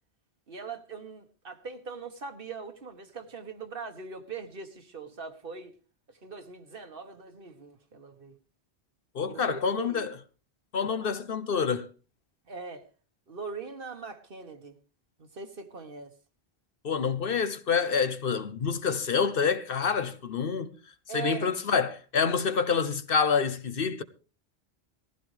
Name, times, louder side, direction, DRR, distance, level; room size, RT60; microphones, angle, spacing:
voice 1, 0.5-5.8 6.1-8.4 9.3-10.1 10.8-11.1 12.5-12.9 13.3-14.8 15.2-16.1 21.1-21.5, right 5 dB, 60° right, 1.6 m, -41 dB
voice 2, 9.1-10.2 10.7-11.9 16.8-20.7 21.1-24.0, left 6 dB, 60° left, 1.1 m, -27 dB
18.5 x 15.0 x 3.2 m
omnidirectional pair, 1.1 m